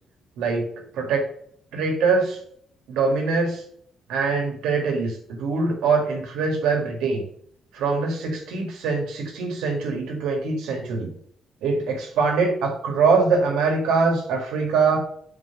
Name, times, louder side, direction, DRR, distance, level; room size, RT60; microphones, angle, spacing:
voice 1, 0.4-0.7 0.9-1.2 1.7-2.4 2.9-3.6 4.1-7.2 7.7-11.1 11.6-15.0, right 4 dB, 90° right, 1 dB, 1.9 m, -23 dB
5.6 x 4.7 x 5.8 m, 0.63 s
cardioid pair, 90°, 0 cm